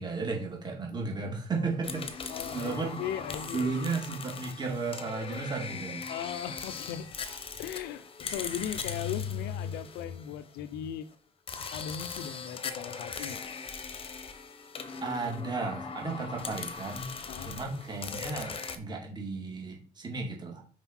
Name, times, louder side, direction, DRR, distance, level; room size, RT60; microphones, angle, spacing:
voice 1, 0.0-3.0 3.5-6.1 15.0-17.1 17.4-20.6, right 4 dB, 25° right, 1 dB, 2.2 m, -34 dB
sound 1, 1.8-10.7 11.5-18.8, left 5 dB, 35° left, 1.0 m, -40 dB
voice 2, 2.3-3.7 6.1-7.1 7.6-11.1 11.6-13.4 17.3-17.6, left 9 dB, 80° left, 15 dB, 0.7 m, -37 dB
6.0 x 4.9 x 4.4 m, 0.39 s
cardioid pair, 110°, 17 cm